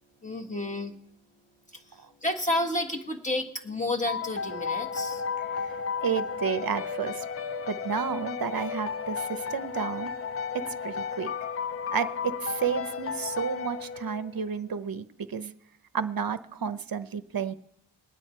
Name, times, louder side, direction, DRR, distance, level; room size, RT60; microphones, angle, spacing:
voice 1, 0.2-1.0 1.7-5.3, left 1 dB, 15° left, 1 dB, 1.5 m, -31 dB
sound 1, 4.1-14.4, left 6 dB, 30° left, 0.4 m, -33 dB
voice 2, 6.0-7.2 7.7-10.1 10.5-11.3 11.9-15.5 15.9-17.5, right 7 dB, 50° right, 11 dB, 0.7 m, -31 dB
21.5 x 9.2 x 4.5 m, 0.78 s
wide cardioid pair, 105°, 47 cm